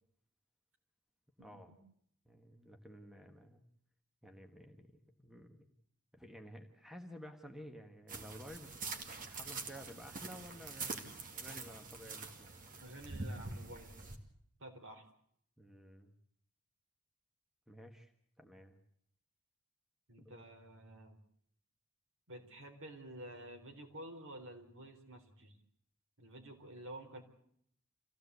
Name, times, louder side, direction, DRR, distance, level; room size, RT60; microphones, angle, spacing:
voice 1, 1.4-1.7 2.3-3.6 4.2-5.7 6.1-8.7 9.2-12.5 15.6-16.1 17.7-18.1 18.4-18.8 20.2-20.4, equal, ahead, 4 dB, 1.5 m, -53 dB
sound 1, 8.1-14.2, right 3 dB, 40° right, 2.4 m, -45 dB
voice 2, 12.8-13.9 14.6-15.1 20.1-21.2 22.3-25.6 26.2-27.2, right 1 dB, 60° right, 4 dB, 4.0 m, -50 dB
26.5 x 16.0 x 8.2 m, 0.70 s
head